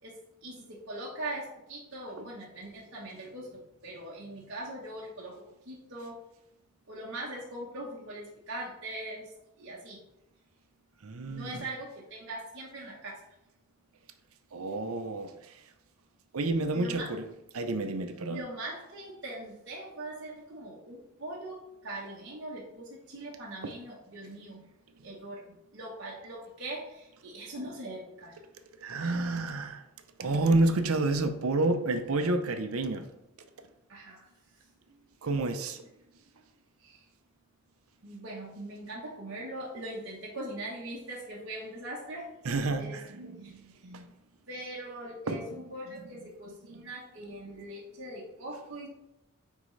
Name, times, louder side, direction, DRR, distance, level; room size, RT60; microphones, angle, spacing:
voice 1, 0.4-6.2 6.9-9.3 9.6-10.0 11.3-13.3 16.7-17.1 18.3-24.6 25.0-28.4 29.0-29.2 33.9-34.3 36.8-37.0 38.0-42.3 42.8-43.0 43.4-43.5 44.5-48.9, right 1 dB, 55° right, 1.1 m, -41 dB
voice 2, 11.0-11.6 14.5-15.3 16.3-17.2 17.5-18.4 23.6-23.7 28.8-29.8 30.2-33.1 35.2-35.8 42.4-44.1 45.3-45.4 46.7-46.9, right 2 dB, 80° right, 0.7 m, -29 dB
9.2 x 3.7 x 3.2 m
head